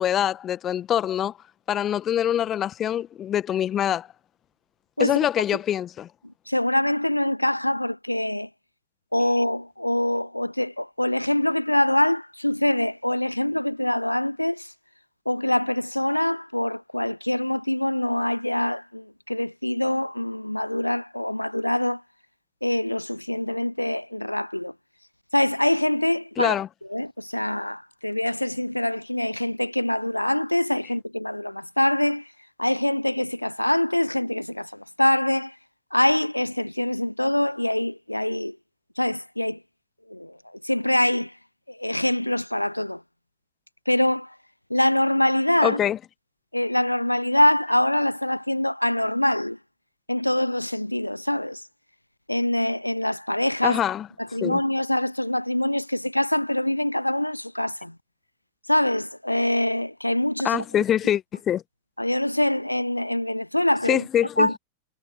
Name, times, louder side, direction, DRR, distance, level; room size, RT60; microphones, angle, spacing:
voice 1, 0.0-1.3 1.7-4.1 5.0-6.1 26.4-26.7 45.6-46.0 53.6-54.1 54.4-54.6 60.4-61.6 63.9-64.5, left 10 dB, 30° left, 1.1 m, -24 dB
voice 2, 6.5-8.5 9.1-14.7 15.3-22.0 22.6-24.7 25.3-26.6 26.9-32.3 32.6-35.6 35.9-38.6 39.0-39.6 40.1-40.4 40.6-41.3 41.7-43.0 43.9-44.3 44.7-45.8 46.5-49.6 50.1-51.6 52.3-53.8 54.2-57.9 58.7-60.6 62.0-64.0 64.4-64.5, left 1 dB, 85° left, 0.5 m, -24 dB
figure-of-eight pair, 90°, 0 cm